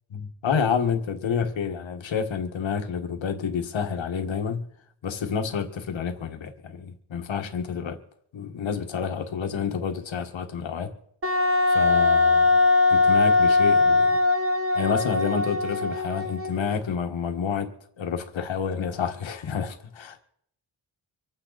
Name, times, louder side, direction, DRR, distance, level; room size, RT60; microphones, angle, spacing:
voice 1, 0.1-4.7 5.0-8.0 8.3-10.9 11.7-12.6 12.9-14.1 14.7-17.7 18.0-20.2, left 6 dB, 70° left, 1.8 m, -29 dB
Wind instrument woodwind instrument, 11.2-16.7, left 3 dB, 30° right, 1.4 m, -21 dB
25.5 x 9.2 x 4.1 m
wide cardioid pair, 160°, 47 cm